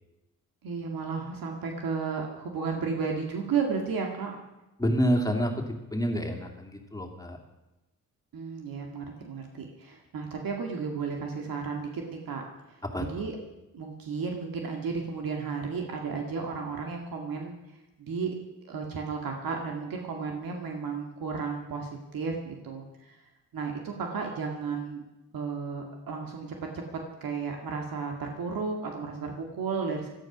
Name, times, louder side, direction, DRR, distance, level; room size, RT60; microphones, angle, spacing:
voice 1, 0.6-4.4 8.3-12.4 12.7-12.8 13.1-13.4 13.7-17.5 18.0-18.3 18.6-23.2 23.5-25.0 25.3-26.5 27.2-30.1, right 5 dB, 85° right, 2 dB, 2.1 m, -33 dB
voice 2, 4.8-7.4 12.8-13.3, equal, 10° left, 1 dB, 2.5 m, -28 dB
17.5 x 13.0 x 6.1 m, 0.99 s
wide cardioid pair, 115°, 34 cm